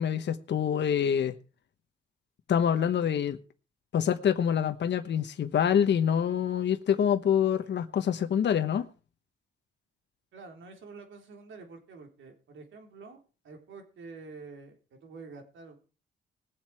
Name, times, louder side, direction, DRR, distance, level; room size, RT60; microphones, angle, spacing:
voice 1, 0.0-1.3 2.5-3.4 3.9-8.9, left 8 dB, 60° left, 1.1 m, -26 dB
voice 2, 10.3-15.8, right 4 dB, 75° right, 3.6 m, -48 dB
20.0 x 7.6 x 4.8 m
cardioid pair, 105°, 20 cm